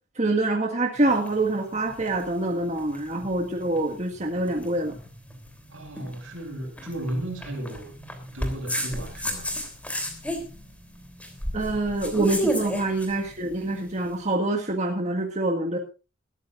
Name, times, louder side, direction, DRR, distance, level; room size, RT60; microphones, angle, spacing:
voice 1, 0.2-5.0 11.5-15.8, right 2 dB, 35° right, 2 dB, 1.7 m, -26 dB
sound 1, 1.0-14.1, equal, 5° left, 3.3 m, -34 dB
voice 2, 5.7-7.9 8.2-9.5, right 1 dB, 70° right, 2 dB, 6.7 m, -34 dB
22.0 x 13.5 x 2.6 m, 0.31 s
head